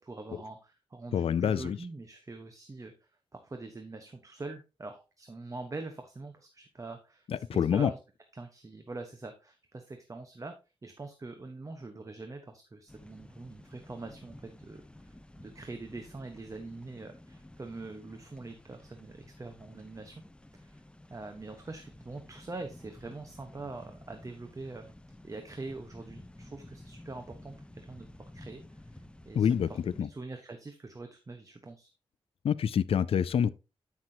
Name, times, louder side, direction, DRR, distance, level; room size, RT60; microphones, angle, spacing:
voice 1, 0.0-8.0 8.3-10.5 10.8-20.2 20.5-20.8 21.1-24.9 25.2-28.1 28.3-31.9, right 3 dB, 35° right, 1.1 m, -44 dB
voice 2, 1.1-1.8 7.3-7.9 29.3-30.1 32.4-33.5, left 8 dB, 70° left, 0.4 m, -27 dB
sound 1, 12.9-30.0, left 1 dB, 10° left, 0.6 m, -52 dB
11.5 x 6.0 x 2.8 m
cardioid pair, 80°, 10 cm